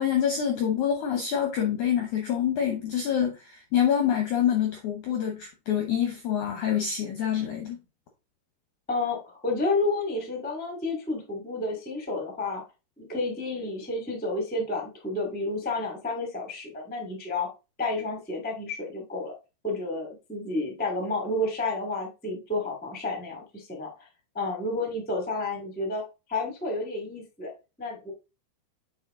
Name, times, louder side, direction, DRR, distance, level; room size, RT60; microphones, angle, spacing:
voice 1, 0.0-7.8, left 9 dB, 75° left, 4 dB, 1.8 m, -26 dB
voice 2, 8.9-12.6 13.0-17.5 17.8-19.3 19.6-24.1 24.3-26.0 26.3-27.5 27.8-28.1, left 2 dB, 10° left, 1 dB, 0.6 m, -30 dB
7.9 x 4.6 x 3.8 m, 0.29 s
omnidirectional pair, 4.9 m